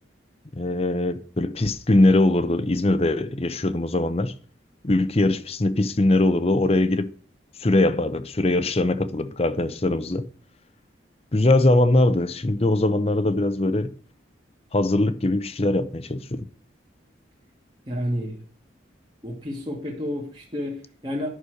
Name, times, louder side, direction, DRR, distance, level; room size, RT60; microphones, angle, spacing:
voice 1, 0.5-4.3 4.8-7.1 7.6-10.2 11.3-13.9 14.7-16.5, left 2 dB, 30° left, 0.7 m, -21 dB
voice 2, 17.9-18.4 19.2-21.3, equal, 25° right, 2.0 m, -30 dB
11.5 x 6.2 x 6.4 m
head